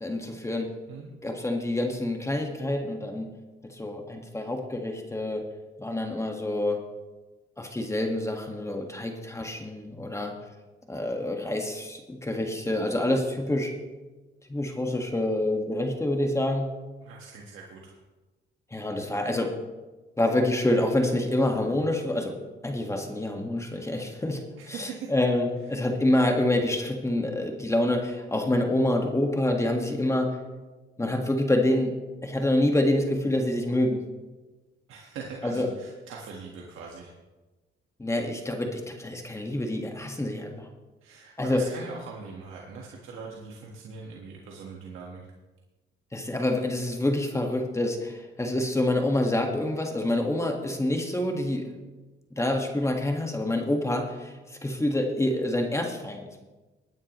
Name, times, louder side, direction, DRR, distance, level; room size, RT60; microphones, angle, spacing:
voice 1, 0.0-0.7 1.2-3.3 3.7-5.4 5.8-6.8 7.6-10.3 10.9-13.7 14.5-16.7 18.7-19.5 20.2-22.3 22.6-30.4 31.0-31.9 32.2-34.0 35.4-35.7 38.0-40.7 41.4-41.6 46.1-51.7 52.4-54.3 54.6-56.4, left 1 dB, 15° left, 2 dB, 1.7 m, -27 dB
voice 2, 17.0-18.0 24.6-25.1 34.9-37.1 41.0-45.3, right 5 dB, 85° right, -1 dB, 1.6 m, -42 dB
19.5 x 9.5 x 3.1 m, 1.2 s
cardioid pair, 90°, 20 cm